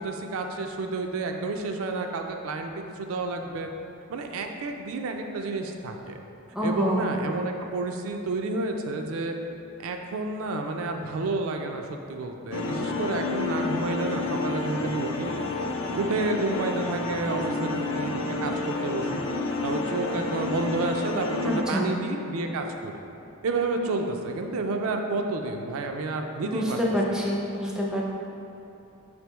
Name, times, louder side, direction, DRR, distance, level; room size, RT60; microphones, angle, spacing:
voice 1, 0.0-3.7 4.1-6.2 6.6-9.4 9.8-15.3 15.9-19.2 19.6-22.9 23.4-26.8, right 3 dB, 70° right, 4 dB, 0.3 m, -30 dB
voice 2, 6.5-7.1 21.5-21.9 26.4-28.0, equal, 5° right, -4 dB, 0.4 m, -27 dB
sound 1, 12.5-21.6, left 3 dB, 60° left, 0.4 m, -30 dB
4.9 x 3.4 x 3.0 m, 2.9 s
head